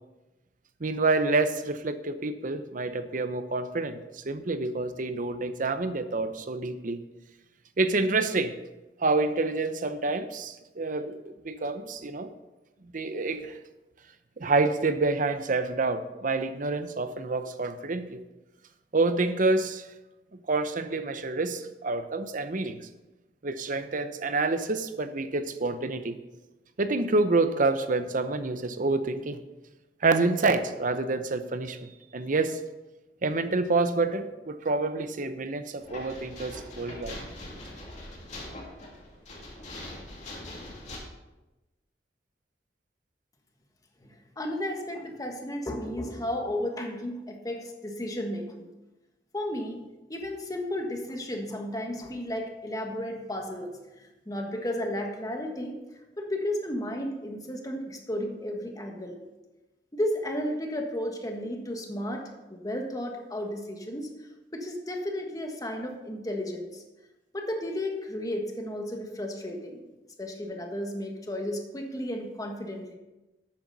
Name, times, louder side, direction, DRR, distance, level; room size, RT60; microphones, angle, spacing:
voice 1, 0.8-7.0 7.8-8.5 9.0-11.2 11.4-12.3 12.9-13.6 14.4-18.2 18.9-19.9 20.5-22.8 23.4-26.2 26.8-29.4 30.0-31.8 32.1-32.6 33.2-37.2, right 3 dB, 50° right, 10 dB, 0.8 m, -27 dB
sound 1, 35.8-41.0, left 1 dB, 45° left, 2.7 m, -42 dB
voice 2, 44.0-48.7 49.3-49.8 50.1-55.8 56.2-59.2 59.9-66.8 67.3-69.9 70.2-73.0, left 1 dB, 20° left, 2 dB, 1.5 m, -33 dB
12.0 x 8.8 x 4.1 m, 1.0 s
head